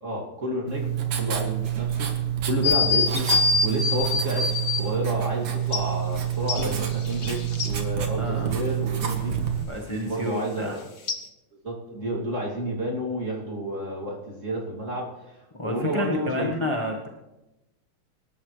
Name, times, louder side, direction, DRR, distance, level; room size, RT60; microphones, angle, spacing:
voice 1, 0.0-2.1 2.4-3.3 3.6-9.3 10.0-10.8 11.6-15.4 15.6-16.5, right 1 dB, 35° right, -3 dB, 3.0 m, -30 dB
Writing, 0.7-9.6, right 10 dB, 85° right, 2.4 m, -28 dB
sound 1, 2.6-4.9 5.7-5.8 6.5-7.7 11.1-11.2, left 4 dB, 40° left, 1.2 m, -24 dB
voice 2, 8.2-8.5 9.7-10.8 15.6-17.1, left 1 dB, 15° left, -1 dB, 1.1 m, -29 dB
25.5 x 12.5 x 3.3 m, 0.99 s
omnidirectional pair, 2.4 m